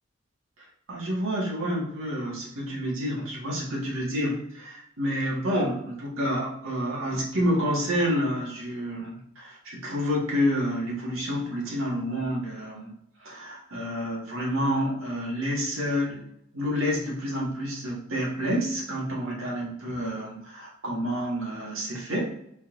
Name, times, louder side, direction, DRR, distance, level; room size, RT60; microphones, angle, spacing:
voice 1, 0.6-12.9 13.2-16.2 16.5-22.2, equal, 85° right, -4 dB, 1.8 m, -29 dB
4.6 x 4.3 x 2.6 m, 0.72 s
head